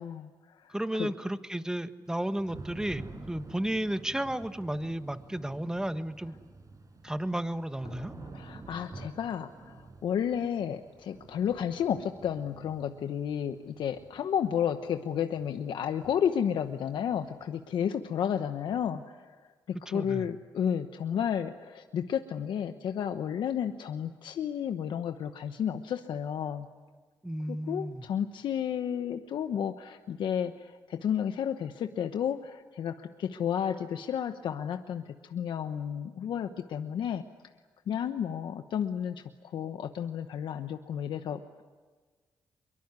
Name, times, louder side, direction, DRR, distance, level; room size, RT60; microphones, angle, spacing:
voice 1, 0.0-1.1 8.3-19.4 19.7-26.7 27.5-37.2 37.9-39.2 39.5-41.6, left 8 dB, 80° left, 8 dB, 1.0 m, -32 dB
voice 2, 0.7-6.3 7.0-8.1 19.9-20.2 27.2-28.0, right 1 dB, 10° right, 10 dB, 1.5 m, -33 dB
Thunder / Rain, 2.1-17.8, right 3 dB, 45° right, 5.6 m, -49 dB
23.5 x 23.0 x 9.6 m, 1.4 s
cardioid pair, 65°, 8 cm